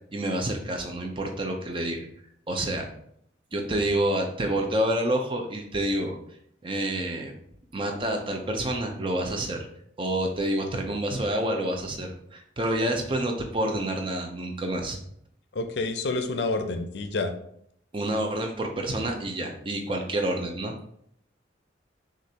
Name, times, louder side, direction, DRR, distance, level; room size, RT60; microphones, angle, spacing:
voice 1, 0.1-2.1 2.5-2.9 3.5-6.2 6.6-7.3 7.7-9.7 10.0-15.0 17.9-20.7, right 1 dB, 25° right, 3 dB, 0.6 m, -28 dB
voice 2, 15.5-17.3, left 3 dB, 65° left, 7 dB, 0.5 m, -28 dB
6.3 x 2.5 x 2.8 m, 0.70 s
head